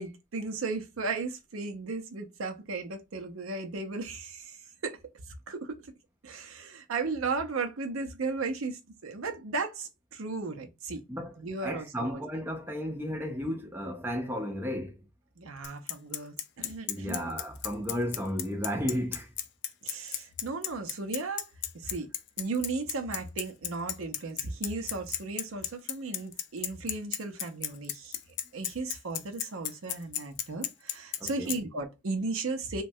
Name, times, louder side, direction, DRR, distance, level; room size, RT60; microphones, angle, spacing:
voice 1, 0.0-5.0 5.3-5.7 6.2-11.0 11.4-12.2 15.4-17.3 19.8-21.5 21.7-22.1 22.4-28.2 28.5-32.8, right 3 dB, 80° right, 0.6 m, -35 dB
voice 2, 11.6-15.0 16.9-19.3 31.2-31.6, equal, 10° right, 0.4 m, -33 dB
Bicycle, 15.6-31.6, left 11 dB, 55° left, 0.3 m, -33 dB
3.1 x 2.2 x 2.7 m
head